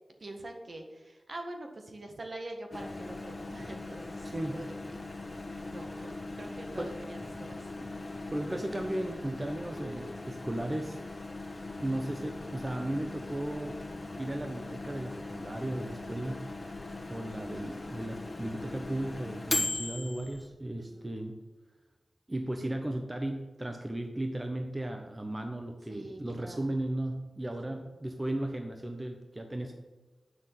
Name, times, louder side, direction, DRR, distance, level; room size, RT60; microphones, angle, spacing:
voice 1, 0.2-5.0 5.6-7.7 20.9-21.1 25.9-26.7 27.7-27.8, right 1 dB, 55° right, 4 dB, 1.7 m, -45 dB
Microwave oven, 2.7-20.5, left 2 dB, 40° left, 1.2 m, -39 dB
voice 2, 4.2-4.6 6.8-6.9 8.3-11.0 11.8-13.8 14.2-16.4 17.1-21.4 22.3-29.7, right 1 dB, 25° right, 4 dB, 1.1 m, -35 dB
7.7 x 6.1 x 7.7 m, 1.2 s
cardioid pair, 50°, 0 cm